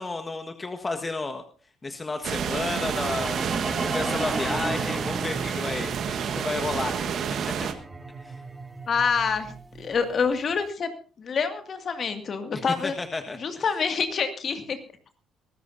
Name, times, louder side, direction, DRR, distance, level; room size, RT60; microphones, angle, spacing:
voice 1, 0.0-1.4 1.8-3.4 3.9-6.9 7.5-7.7 8.2-8.4 12.5-13.6, left 3 dB, 25° left, 5 dB, 1.5 m, -32 dB
sound 1, 2.2-7.7, right 7 dB, 60° right, 1.4 m, -29 dB
sound 2, 2.3-10.4, right 2 dB, 20° right, 2.4 m, -35 dB
voice 2, 8.9-10.9 11.2-13.0 13.4-14.8, left 5 dB, 50° left, 8 dB, 2.2 m, -27 dB
23.5 x 13.5 x 2.7 m, 0.39 s
hypercardioid pair, 60°, 0 cm